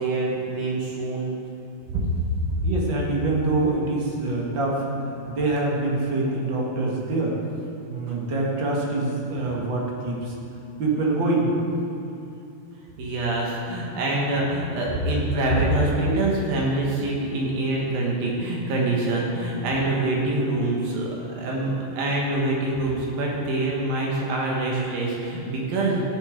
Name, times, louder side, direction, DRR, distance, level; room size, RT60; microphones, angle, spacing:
voice 1, 0.0-1.3 1.9-2.0 2.5-2.6 8.1-8.2 13.0-26.0, right 2 dB, 80° right, -3 dB, 3.3 m, -25 dB
voice 2, 2.6-4.9 5.3-7.4 7.9-10.3 10.8-11.5, right 2 dB, 45° right, -2 dB, 1.8 m, -25 dB
15.5 x 6.9 x 5.1 m, 2.8 s
omnidirectional pair, 4.0 m